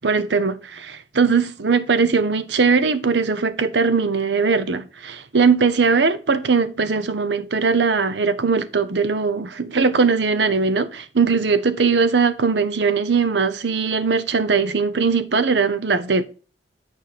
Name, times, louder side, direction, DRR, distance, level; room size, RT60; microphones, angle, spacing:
voice 1, 0.0-16.3, right 5 dB, 80° right, 0.8 m, -20 dB
9.3 x 4.9 x 4.2 m
head